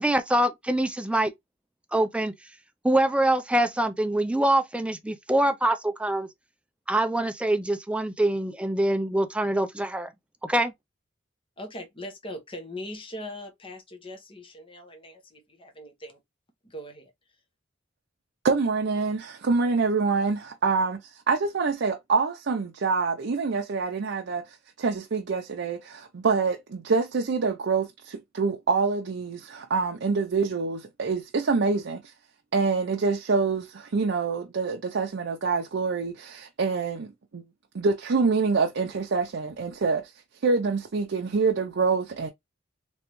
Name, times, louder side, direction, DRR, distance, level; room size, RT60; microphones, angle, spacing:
voice 1, 0.0-1.3 1.9-2.3 2.8-6.3 6.9-10.1 10.4-10.7, right 1 dB, 5° right, 0.5 m, -24 dB
voice 2, 11.6-16.2 16.6-17.1, left 1 dB, 30° left, 1.0 m, -40 dB
voice 3, 18.4-32.1 32.5-37.4 37.7-40.1 40.4-42.3, right 4 dB, 65° right, 0.5 m, -26 dB
3.4 x 3.1 x 3.0 m
head